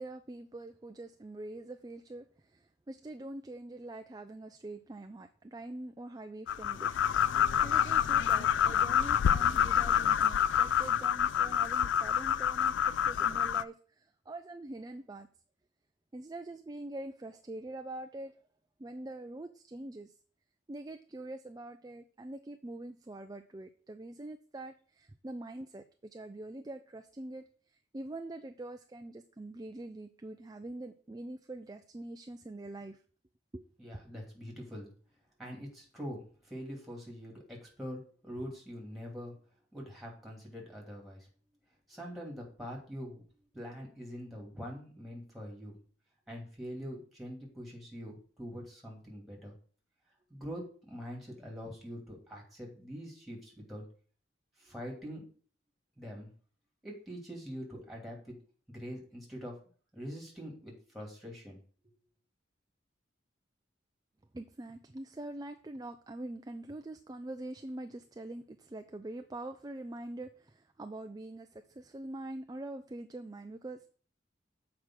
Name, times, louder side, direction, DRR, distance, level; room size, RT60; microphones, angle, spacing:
voice 1, 0.0-6.9 7.2-15.3 16.1-18.4 18.8-20.1 20.7-33.0 33.5-33.7 64.3-73.9, right 2 dB, 20° right, 7 dB, 0.4 m, -44 dB
sound 1, 6.5-13.6, left 9 dB, 80° left, 0.3 m, -27 dB
voice 2, 33.8-34.9 35.4-39.4 39.7-41.3 41.9-43.2 43.5-45.7 46.3-49.5 50.3-53.8 54.6-55.3 56.0-56.3 56.8-58.4 58.7-59.6 59.9-61.6, equal, ahead, -2 dB, 2.7 m, -44 dB
7.4 x 4.8 x 6.2 m, 0.42 s
head